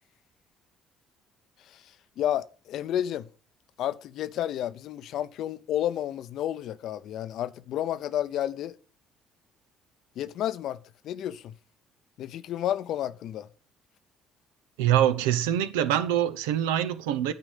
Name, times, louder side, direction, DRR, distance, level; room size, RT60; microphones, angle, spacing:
voice 1, 1.6-3.3 3.8-8.8 10.2-11.5 12.2-13.5, left 11 dB, 70° left, 0.6 m, -31 dB
voice 2, 14.8-17.3, right 11 dB, 90° right, 0.7 m, -24 dB
9.3 x 4.8 x 7.2 m
supercardioid pair, 65°, 0 cm